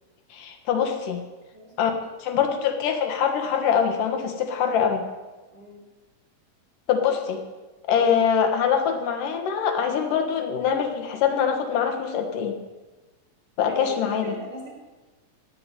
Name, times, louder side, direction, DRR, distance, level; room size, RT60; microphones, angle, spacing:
voice 1, 0.3-1.2 1.8-1.9 2.2-5.0 6.9-7.4 7.9-12.6 13.6-14.3, left 7 dB, 70° left, 5 dB, 2.9 m, -23 dB
voice 2, 1.5-2.0 5.5-5.8 7.9-8.2 13.7-14.7, right 2 dB, 40° right, -2 dB, 3.9 m, -40 dB
16.5 x 6.0 x 9.9 m, 1.2 s
omnidirectional pair, 4.2 m